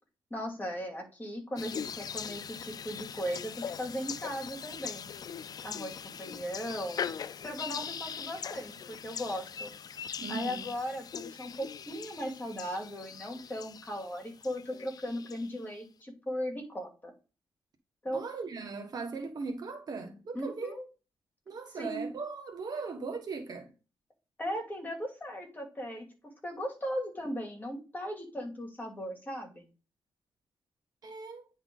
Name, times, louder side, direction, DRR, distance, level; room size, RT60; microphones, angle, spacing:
voice 1, 0.3-5.1 5.6-7.1 7.4-9.7 10.3-17.1 18.0-18.2 20.3-20.8 21.7-22.1 24.4-29.7, equal, 20° left, 2.5 m, -37 dB
sound 1, 1.6-15.6, left 7 dB, 50° left, 0.4 m, -41 dB
voice 2, 10.2-10.7 18.1-20.7 21.5-23.7 31.0-31.4, right 4 dB, 50° right, 1.4 m, -38 dB
9.8 x 3.6 x 3.8 m
cardioid pair, 115°, 8 cm